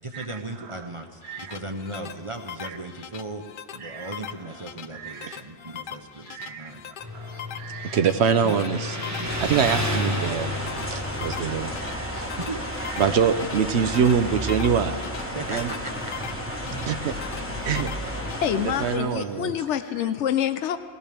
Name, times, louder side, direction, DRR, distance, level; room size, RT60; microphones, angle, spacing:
voice 1, 0.0-3.4 3.7-6.8 8.4-9.3 12.4-12.8 15.3-16.1, right 2 dB, 30° right, 4 dB, 0.8 m, -37 dB
sound 1, 1.0-18.5, left 9 dB, 55° left, 0.7 m, -41 dB
voice 2, 3.8-4.1 4.9-5.4 6.3-6.7 7.1-12.3 13.0-15.7 16.8-17.1 17.6-17.9 18.6-19.6, right 7 dB, 75° right, 8 dB, 0.9 m, -25 dB
Motorcycle, 7.0-19.6, left 1 dB, 15° right, 1.3 m, -35 dB
sound 2, 9.2-19.0, equal, 10° left, 1.3 m, -33 dB
voice 3, 18.4-20.8, left 9 dB, 85° left, 11 dB, 1.0 m, -26 dB
20.0 x 17.0 x 3.4 m, 2.1 s
omnidirectional pair, 1.2 m